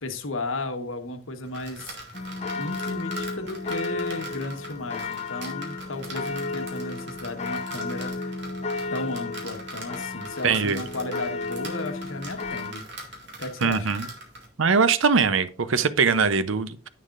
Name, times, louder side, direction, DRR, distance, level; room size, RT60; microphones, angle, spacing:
voice 1, 0.0-2.0 2.5-8.3 8.9-13.9, left 2 dB, 80° left, 1.3 m, -34 dB
sound 1, 1.4-14.5, right 1 dB, 55° right, 2.2 m, -42 dB
sound 2, 2.1-12.7, left 3 dB, 35° left, 0.7 m, -33 dB
voice 2, 10.4-10.8 13.6-14.1 14.6-16.9, right 5 dB, 75° right, 0.7 m, -22 dB
9.9 x 8.5 x 2.5 m
head